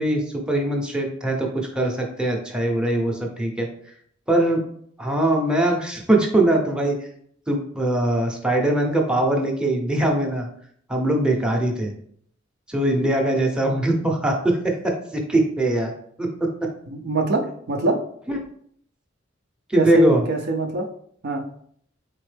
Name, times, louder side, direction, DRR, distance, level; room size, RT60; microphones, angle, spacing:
voice 1, 0.0-3.7 4.3-4.6 5.0-7.0 7.5-10.5 10.9-11.9 12.7-15.9 16.2-16.5 19.7-20.2, right 1 dB, 5° right, 0 dB, 0.7 m, -22 dB
voice 2, 16.9-18.0 19.8-20.9 21.2-21.5, right 2 dB, 55° right, 3 dB, 0.5 m, -23 dB
4.2 x 3.7 x 3.3 m, 0.64 s
head